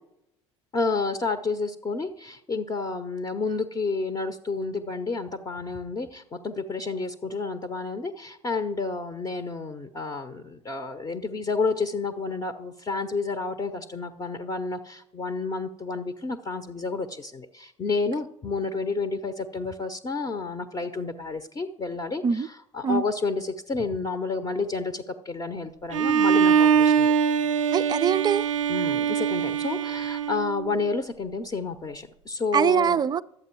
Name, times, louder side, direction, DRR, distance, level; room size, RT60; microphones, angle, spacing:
voice 1, 0.7-27.1 28.7-33.0, left 4 dB, 25° left, 0.7 m, -30 dB
Bowed string instrument, 25.9-30.9, right 7 dB, 85° right, 0.4 m, -23 dB
voice 2, 27.7-28.5 32.5-33.2, right 7 dB, 25° right, 0.4 m, -23 dB
12.0 x 8.0 x 4.5 m
hypercardioid pair, 70°, 16 cm